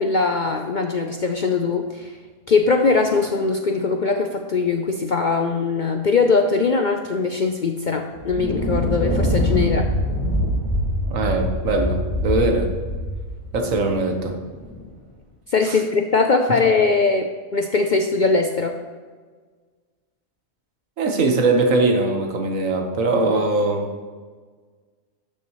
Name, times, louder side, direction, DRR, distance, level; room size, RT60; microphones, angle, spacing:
voice 1, 0.0-2.1 2.5-9.9 15.5-18.8, left 4 dB, 60° left, 4 dB, 0.5 m, -21 dB
Thunder, 8.1-14.8, left 1 dB, 25° left, 1.8 m, -24 dB
voice 2, 11.1-12.7 13.5-14.3 15.6-15.8 21.0-23.9, right 3 dB, 70° right, 3 dB, 1.6 m, -21 dB
12.0 x 6.8 x 3.1 m, 1.5 s
omnidirectional pair, 1.4 m